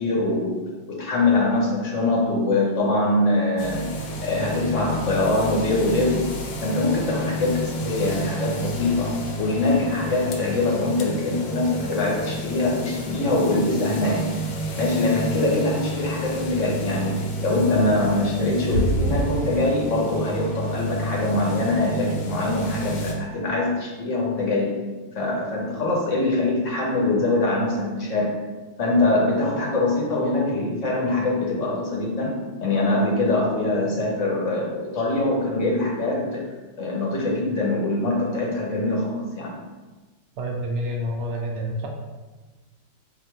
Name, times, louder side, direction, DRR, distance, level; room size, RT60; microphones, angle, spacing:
voice 1, 0.0-3.9 4.2-6.3 6.6-14.3 14.8-24.8 25.1-28.4 28.8-36.5 36.8-39.6, left 2 dB, 55° left, -3 dB, 1.0 m, -23 dB
sound 1, 3.6-23.1, equal, 70° left, 1.2 m, -30 dB
voice 2, 40.4-41.9, equal, 70° right, 0 dB, 0.6 m, -28 dB
4.3 x 2.6 x 4.3 m, 1.2 s
omnidirectional pair, 1.9 m